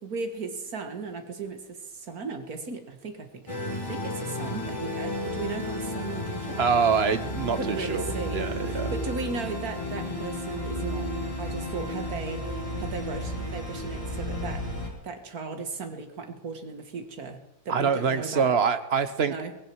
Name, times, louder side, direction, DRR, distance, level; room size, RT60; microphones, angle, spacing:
voice 1, 0.0-6.6 7.5-14.7 15.0-18.5 19.3-19.6, right 4 dB, 75° right, 6 dB, 2.1 m, -37 dB
sound 1, 3.5-14.9, left 1 dB, 20° left, 3.7 m, -33 dB
voice 2, 6.6-8.1 8.3-8.9 17.7-19.4, right 6 dB, 50° right, 11 dB, 1.1 m, -25 dB
19.5 x 16.0 x 4.7 m, 0.90 s
omnidirectional pair, 1.6 m